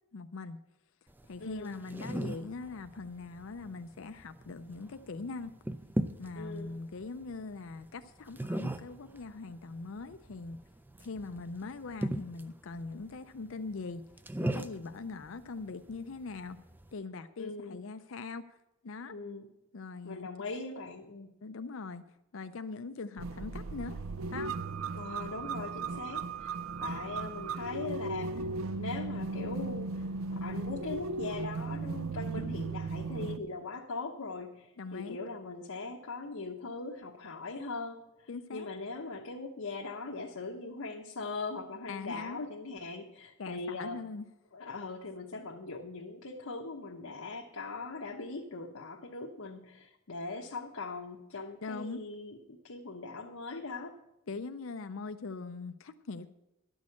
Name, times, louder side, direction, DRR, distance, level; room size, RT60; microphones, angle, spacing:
voice 1, 0.1-0.6 1.3-5.6 6.2-10.6 11.0-14.0 14.4-16.6 16.9-18.6 18.8-19.4 19.7-20.3 21.4-22.0 22.3-24.0 24.3-24.5 32.3-32.7 34.8-35.2 38.3-38.7 41.9-42.5 43.4-44.3 51.6-52.0 54.3-56.3, left 4 dB, 70° left, 9 dB, 0.5 m, -41 dB
sound 1, 1.1-16.9, right 1 dB, 10° right, 0.4 m, -40 dB
voice 2, 1.4-2.2 6.3-6.7 17.4-17.8 19.1-19.5 20.0-21.3 24.9-26.5 26.8-44.0 44.5-54.0, left 3 dB, 85° left, 0 dB, 1.0 m, -41 dB
sound 2, 23.2-33.4, right 3 dB, 70° right, 0.5 m, -36 dB
12.0 x 6.3 x 8.4 m, 0.92 s
head